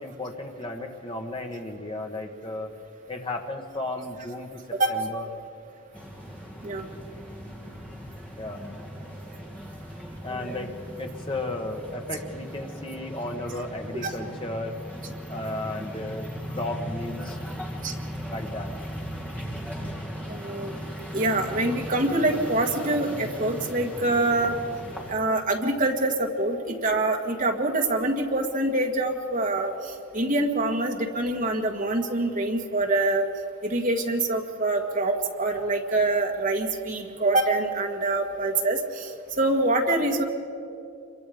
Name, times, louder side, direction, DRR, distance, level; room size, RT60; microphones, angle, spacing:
voice 1, 0.0-2.7 3.1-4.6 4.9-5.3 8.4-8.6 10.2-14.8 15.3-16.2 16.5-17.4 18.3-18.7, left 2 dB, 25° left, 3 dB, 1.6 m, -34 dB
sound 1, 5.9-25.1, equal, 5° left, 2.2 m, -38 dB
voice 2, 20.3-20.7 21.1-24.6 25.1-33.3 33.6-40.2, right 2 dB, 40° right, 2 dB, 1.9 m, -25 dB
26.0 x 23.0 x 5.2 m, 2.6 s
head